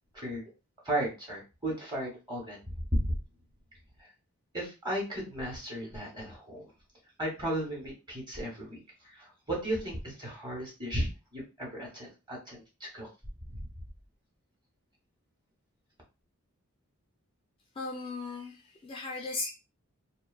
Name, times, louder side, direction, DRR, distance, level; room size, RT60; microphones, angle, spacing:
voice 1, 0.8-2.6 2.9-3.1 4.0-4.1 4.5-6.7 7.2-13.1 13.5-13.7, right 1 dB, 20° right, -2 dB, 1.0 m, -35 dB
voice 2, 17.8-19.5, left 3 dB, 25° left, 1 dB, 0.3 m, -37 dB
2.5 x 2.2 x 2.3 m, 0.29 s
head